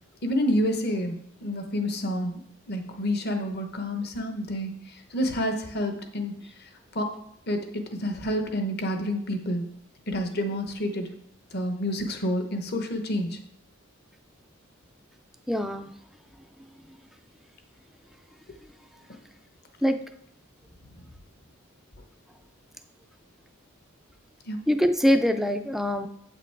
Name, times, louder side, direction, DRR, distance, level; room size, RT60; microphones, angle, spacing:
voice 1, 0.2-2.4 2.7-4.7 5.1-6.3 6.9-7.1 7.5-9.6 10.1-11.1 11.5-13.4 24.5-24.6, equal, 45° left, 5 dB, 1.0 m, -28 dB
voice 2, 15.5-15.9 19.8-20.0 24.7-26.1, equal, ahead, 8 dB, 0.4 m, -23 dB
8.1 x 6.0 x 4.6 m, 0.72 s
head